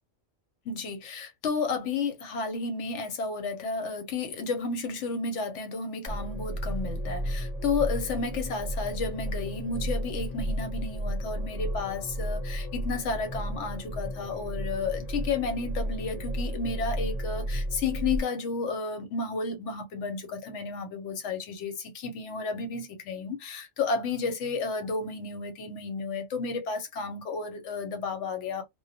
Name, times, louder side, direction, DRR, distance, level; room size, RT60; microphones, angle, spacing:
voice 1, 0.6-28.6, left 4 dB, 85° left, 1.0 m, -32 dB
sound 1, 6.1-18.2, equal, 35° left, 0.9 m, -33 dB
2.2 x 2.1 x 2.6 m
omnidirectional pair, 1.2 m